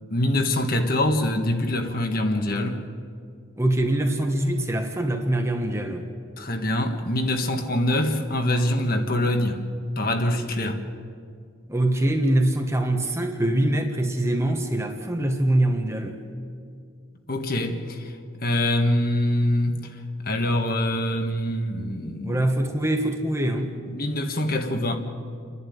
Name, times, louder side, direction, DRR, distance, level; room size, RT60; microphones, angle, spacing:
voice 1, 0.1-2.9 6.4-9.6 9.9-10.8 17.3-18.2 18.4-22.4 23.9-25.0, left 1 dB, 45° left, 5 dB, 1.6 m, -24 dB
voice 2, 3.6-6.1 11.7-16.2 22.2-23.7, right 1 dB, 15° right, 4 dB, 1.3 m, -23 dB
29.5 x 11.5 x 9.4 m, 2.3 s
head